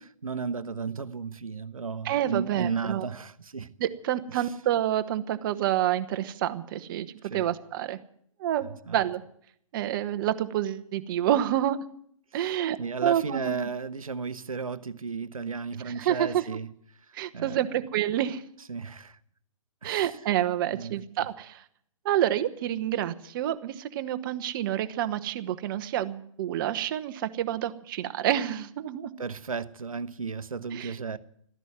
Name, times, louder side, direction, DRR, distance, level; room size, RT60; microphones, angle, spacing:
voice 1, 0.2-3.7 4.4-4.5 7.3-7.5 8.9-9.0 12.4-16.7 17.3-17.7 18.7-19.2 19.8-20.1 20.7-21.0 29.2-31.2, right 5 dB, 85° right, 1.0 m, -34 dB
voice 2, 2.0-3.1 3.8-7.1 7.3-8.0 8.4-9.2 9.7-11.8 12.3-13.7 15.8-16.4 17.1-18.4 19.8-21.6 22.0-29.1 30.7-30.9, right 11 dB, 40° right, 1.1 m, -28 dB
14.0 x 11.0 x 9.5 m
figure-of-eight pair, 130°, 17 cm